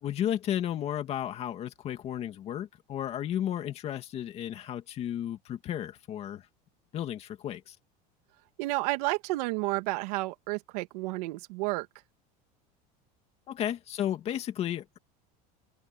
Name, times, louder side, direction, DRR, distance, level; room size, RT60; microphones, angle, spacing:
voice 1, 0.0-6.5 6.9-7.8 13.5-15.0, left 11 dB, 30° left, 2.4 m, -33 dB
voice 2, 8.6-11.9, right 22 dB, 70° right, 2.5 m, -31 dB
cardioid pair, 170°, 20 cm